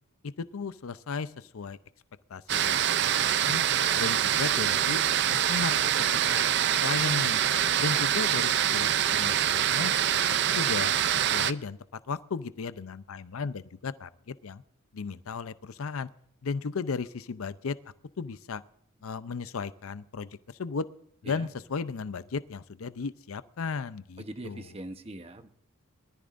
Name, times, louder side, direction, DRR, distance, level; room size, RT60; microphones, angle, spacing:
voice 1, 0.2-1.8 2.3-3.6 4.0-5.0 5.3-6.4 6.8-7.4 7.8-9.9 10.5-14.6 14.9-16.1 16.4-17.8 18.2-18.6 19.0-20.9 21.2-24.7, left 5 dB, 75° left, 15 dB, 0.5 m, -35 dB
sound 1, 2.5-11.5, right 10 dB, 50° right, 0.4 m, -25 dB
voice 2, 24.2-25.5, right 1 dB, 25° right, 9 dB, 0.9 m, -41 dB
23.0 x 13.5 x 2.5 m, 0.69 s
head